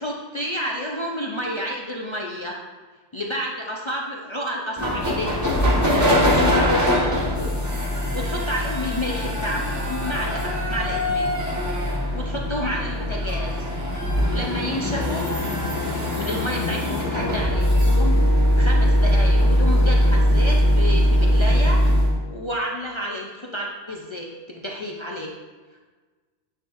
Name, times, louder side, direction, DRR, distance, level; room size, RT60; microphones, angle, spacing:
voice 1, 0.0-2.6 3.1-7.5 7.9-11.6 12.1-13.5 14.3-15.4 16.2-18.1 18.6-21.8 22.3-25.3, equal, 45° left, -2 dB, 0.4 m, -30 dB
sound 1, 4.8-22.1, equal, 15° right, 1.3 m, -21 dB
Wind instrument woodwind instrument, 17.4-23.2, left 4 dB, 80° left, 2.0 m, -38 dB
9.8 x 4.0 x 2.5 m, 1.4 s
omnidirectional pair, 1.2 m